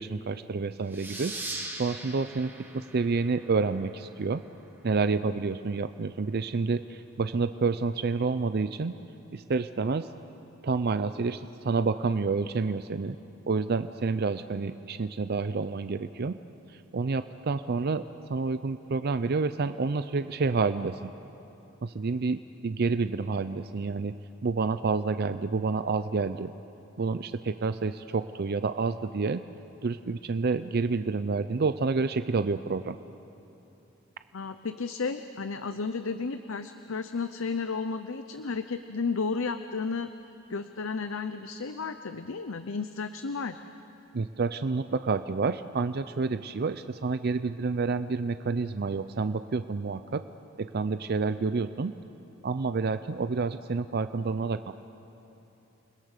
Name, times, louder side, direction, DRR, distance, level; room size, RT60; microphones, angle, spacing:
voice 1, 0.0-1.3 1.8-4.4 4.8-8.9 9.3-10.1 10.6-13.2 13.5-16.3 16.9-18.0 18.3-21.1 21.8-24.1 24.4-26.5 27.0-29.4 29.8-33.0 44.1-50.2 50.6-51.9 52.4-54.7, right 4 dB, 50° right, 11 dB, 0.5 m, -29 dB
sound 1, 0.9-4.2, right 2 dB, 10° right, 1.7 m, -40 dB
voice 2, 34.3-40.1 40.5-43.6, left 4 dB, 75° left, 10 dB, 0.7 m, -33 dB
29.0 x 20.5 x 6.6 m, 2.9 s
head